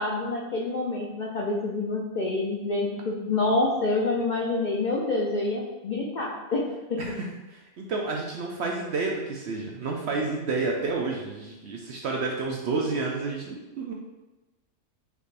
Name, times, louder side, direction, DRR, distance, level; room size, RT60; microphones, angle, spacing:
voice 1, 0.0-7.0, left 2 dB, 65° left, -3 dB, 0.4 m, -27 dB
voice 2, 7.5-13.9, right 3 dB, 65° right, 0 dB, 0.7 m, -30 dB
5.0 x 2.5 x 3.2 m, 1.1 s
omnidirectional pair, 1.5 m